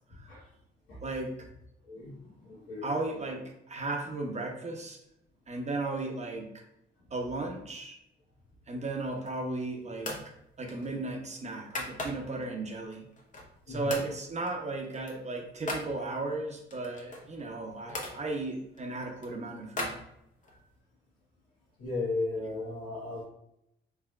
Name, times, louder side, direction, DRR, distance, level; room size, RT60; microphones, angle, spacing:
voice 1, 1.0-1.3 2.8-5.0 5.5-6.5 7.1-8.0 8.7-10.1 10.6-13.1 13.7-19.9, right 2 dB, 35° right, 2 dB, 0.8 m, -35 dB
voice 2, 1.9-2.9 10.7-10.8 13.7-14.0 21.8-23.2, left 3 dB, 85° left, -10 dB, 1.5 m, -35 dB
sound 1, 9.0-9.5 10.0-10.3 10.7-12.5 12.9-13.6 13.9-14.1 14.4-15.9 16.7-18.2 18.7-20.6, left 2 dB, 40° left, 0.9 m, -39 dB
4.6 x 3.4 x 2.3 m, 0.79 s
cardioid pair, 90°, 20 cm